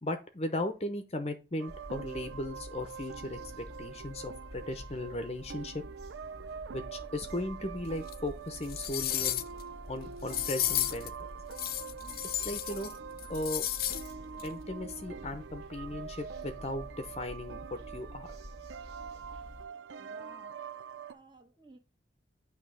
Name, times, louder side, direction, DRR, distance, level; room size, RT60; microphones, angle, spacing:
voice 1, 0.0-5.7 6.7-9.4 9.9-11.1 12.3-12.9 13.3-13.6 14.4-18.3, left 1 dB, 35° left, 0.8 m, -37 dB
sound 1, 1.6-21.1, right 6 dB, 85° right, 0.5 m, -45 dB
sound 2, 1.7-19.7, left 1 dB, 65° right, 1.8 m, -49 dB
sound 3, 8.1-8.2 8.6-9.6 10.3-11.1 11.5-12.9 13.2-14.1 14.4-14.5, left 13 dB, 50° left, 0.5 m, -33 dB
voice 2, 19.7-20.6 21.1-21.8, right 2 dB, 25° right, 1.4 m, -57 dB
9.0 x 3.1 x 6.2 m
head